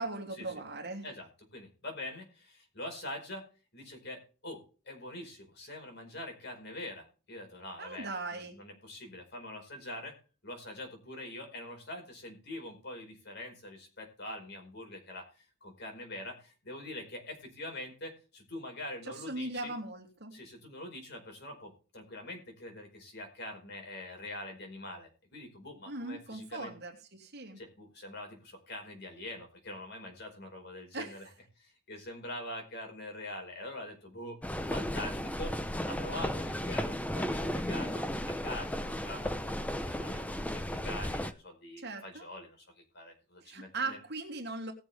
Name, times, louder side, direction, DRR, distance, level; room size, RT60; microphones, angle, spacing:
voice 1, 0.0-1.1 7.8-8.6 19.0-20.3 25.9-27.6 30.9-31.2 41.8-42.3 43.4-44.7, right 3 dB, 55° right, 3.0 m, -39 dB
voice 2, 1.0-3.4 3.7-10.1 10.4-19.7 20.3-26.7 27.6-31.3 31.6-34.4 34.7-35.5 35.8-42.7 42.9-44.0, left 1 dB, 55° left, 4.9 m, -44 dB
sound 1, 34.4-41.3, equal, 5° left, 0.7 m, -34 dB
20.0 x 7.1 x 3.5 m
head